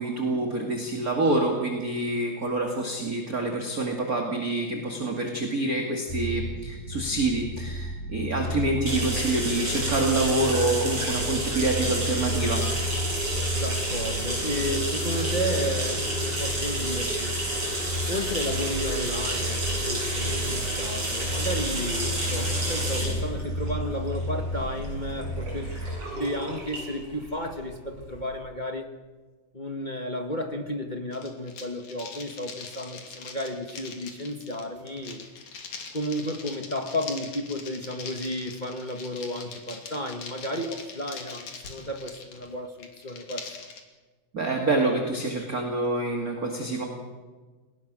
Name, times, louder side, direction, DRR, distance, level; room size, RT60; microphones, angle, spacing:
voice 1, 0.0-12.6 44.3-46.9, right 2 dB, 30° right, 2 dB, 2.5 m, -27 dB
sound 1, 6.1-26.0, equal, 15° left, 4.9 m, -33 dB
sound 2, 8.9-28.3, right 1 dB, 45° right, 9.0 m, -31 dB
voice 2, 13.6-17.4 18.1-25.7 26.1-28.9 29.5-35.3 35.9-43.5, left 1 dB, 40° left, 4 dB, 0.6 m, -33 dB
sound 3, 31.1-43.8, left 5 dB, 70° left, 4.1 m, -42 dB
28.5 x 19.0 x 6.3 m, 1.4 s
omnidirectional pair, 3.6 m